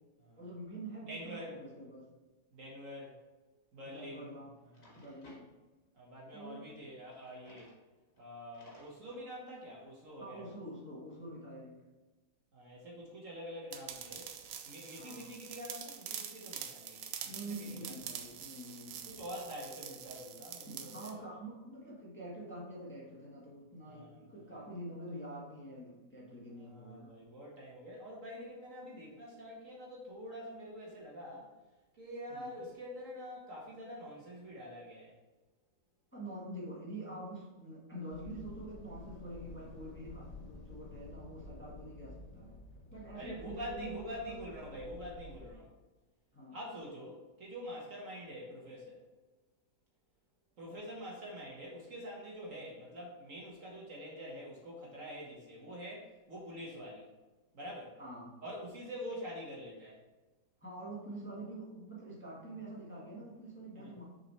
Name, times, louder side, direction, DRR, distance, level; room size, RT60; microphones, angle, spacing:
voice 1, 0.4-2.1 3.8-4.6 5.0-5.5 6.3-6.7 10.2-11.8 14.9-15.3 17.3-19.2 20.6-27.1 32.3-32.5 36.1-42.6 42.9-44.8 46.3-46.6 58.0-58.4 60.6-64.0, right 1 dB, 5° left, -6 dB, 1.4 m, -46 dB
voice 2, 1.1-1.6 2.5-3.1 3.7-4.3 4.8-4.9 5.9-7.7 8.2-10.5 12.5-14.3 14.7-17.3 17.6-17.9 19.1-21.2 23.8-24.1 26.7-31.5 31.9-35.1 43.1-45.7 46.5-49.0 50.6-57.1 57.5-58.0 58.4-60.0 63.7-63.9, equal, 50° right, -3 dB, 1.7 m, -46 dB
Drawer open or close, 3.9-4.1 4.6-5.4 7.0-7.8 8.1-8.2 8.5-9.2, left 1 dB, 40° left, 1.9 m, -60 dB
sound 1, 13.7-21.1, right 9 dB, 85° right, 1.3 m, -45 dB
sound 2, 38.1-45.5, left 1 dB, 85° left, 1.6 m, -51 dB
6.4 x 4.4 x 4.1 m, 1.2 s
omnidirectional pair, 1.8 m